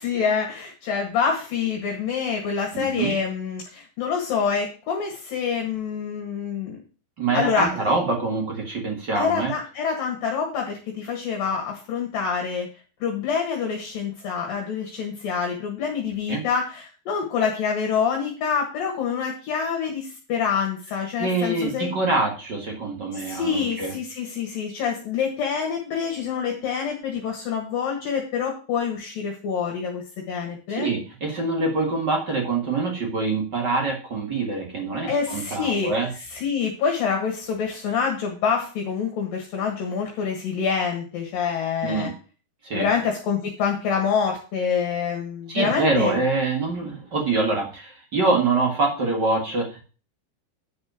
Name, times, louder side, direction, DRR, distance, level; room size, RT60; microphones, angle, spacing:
voice 1, 0.0-6.8 7.3-7.8 9.1-12.7 13.0-21.9 23.1-30.9 35.1-35.9 36.3-42.1 42.7-46.2, left 6 dB, 60° left, 1 dB, 3.1 m, -26 dB
voice 2, 2.7-3.1 7.2-9.5 16.3-16.4 21.2-23.9 30.7-36.1 41.8-42.1 42.6-42.9 45.5-49.8, right 3 dB, 55° right, 0 dB, 1.2 m, -25 dB
10.0 x 5.3 x 6.3 m, 0.37 s
omnidirectional pair, 4.9 m